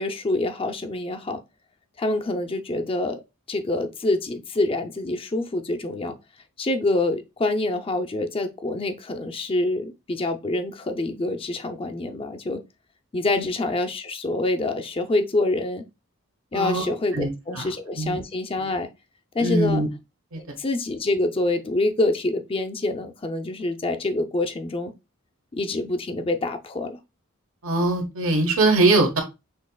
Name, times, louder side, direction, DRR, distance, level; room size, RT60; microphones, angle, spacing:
voice 1, 0.0-1.4 2.0-3.2 3.5-6.2 6.6-12.6 13.1-15.8 16.5-18.9 19.3-19.8 20.4-24.9 25.5-27.0, left 2 dB, 25° left, 0.5 m, -26 dB
voice 2, 16.5-16.8 17.1-17.3 17.6-17.7 18.0-18.2 19.4-19.9 20.3-20.4 27.6-29.2, right 2 dB, 75° right, 1.3 m, -21 dB
6.3 x 2.9 x 2.3 m
head